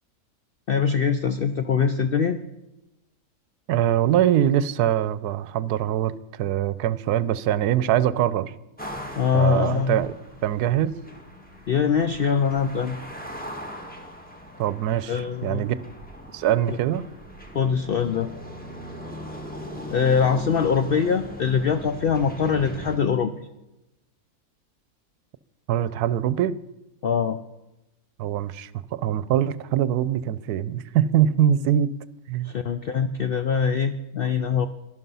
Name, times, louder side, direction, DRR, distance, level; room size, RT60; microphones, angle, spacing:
voice 1, 0.7-2.4 9.2-10.0 11.7-13.0 15.1-15.6 16.7-16.8 17.5-18.3 19.9-23.3 27.0-27.4 32.4-34.7, left 6 dB, 70° left, 9 dB, 0.5 m, -23 dB
voice 2, 3.7-8.5 9.3-10.1 10.4-11.0 14.6-15.8 16.3-17.1 25.7-26.6 28.2-31.9 32.3-32.5, right 11 dB, 85° right, 16 dB, 1.1 m, -23 dB
sound 1, 8.8-23.0, equal, 5° left, 1.5 m, -39 dB
11.5 x 11.5 x 5.5 m, 0.95 s
omnidirectional pair, 1.6 m